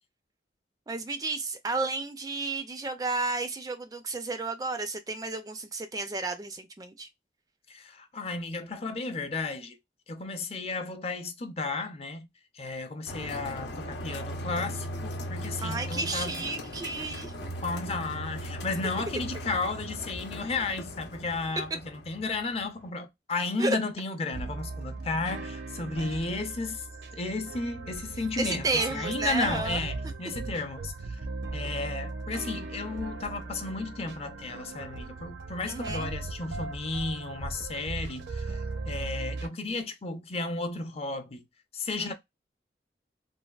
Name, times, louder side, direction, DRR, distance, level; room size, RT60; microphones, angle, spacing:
voice 1, 0.9-7.1 15.6-17.3 23.6-23.8 26.0-26.1 28.4-29.8 35.7-36.1 42.0-42.1, right 3 dB, 20° right, 0.3 m, -32 dB
voice 2, 7.7-9.8 10.1-12.3 12.5-16.4 17.6-26.8 27.1-31.2 31.5-38.6 38.9-41.4 41.7-42.1, left 3 dB, 35° left, 0.5 m, -33 dB
sound 1, 13.1-22.8, equal, 90° left, 0.7 m, -38 dB
sound 2, 24.3-39.5, right 3 dB, 75° right, 0.6 m, -38 dB
3.3 x 2.2 x 2.3 m
head